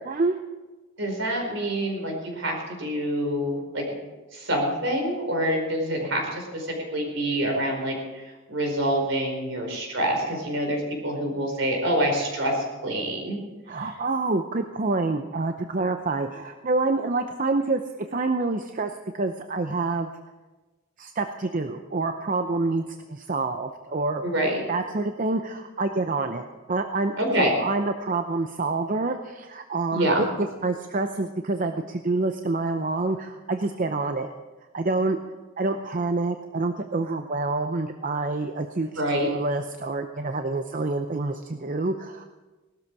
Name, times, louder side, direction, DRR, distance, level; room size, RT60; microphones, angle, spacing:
voice 1, 0.1-0.4 13.7-20.1 21.0-24.2 24.7-34.3 34.7-35.2 35.6-42.2, right 3 dB, 40° right, 6 dB, 0.7 m, -27 dB
voice 2, 1.0-3.8 4.3-13.4 24.2-24.6 27.2-27.5 29.9-30.2 38.9-39.3, right 1 dB, 65° right, 1 dB, 4.8 m, -26 dB
18.5 x 13.0 x 4.7 m, 1.2 s
head